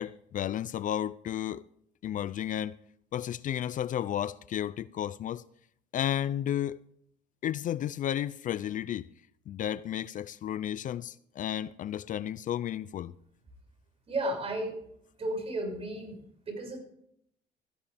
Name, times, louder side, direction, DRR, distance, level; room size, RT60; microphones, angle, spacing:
voice 1, 0.0-1.6 2.0-2.8 3.1-5.4 5.9-6.8 7.4-9.1 9.5-13.1, left 11 dB, 50° left, 0.5 m, -32 dB
voice 2, 14.1-14.7 15.2-16.2 16.4-16.8, right 1 dB, 35° right, 6.4 m, -33 dB
15.5 x 15.0 x 3.5 m
cardioid pair, 110°, 17 cm